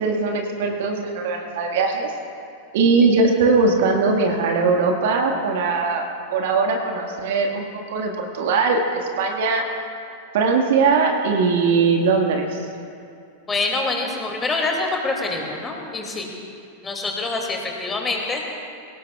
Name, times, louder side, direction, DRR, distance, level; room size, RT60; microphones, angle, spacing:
voice 1, 0.0-2.1 2.7-6.0 6.3-9.7 10.3-12.6, right 4 dB, 55° right, 2 dB, 1.8 m, -20 dB
voice 2, 13.5-16.3 16.8-18.4, left 3 dB, 15° left, 0 dB, 2.6 m, -25 dB
23.5 x 18.0 x 2.4 m, 2.4 s
figure-of-eight pair, 90°, 0 cm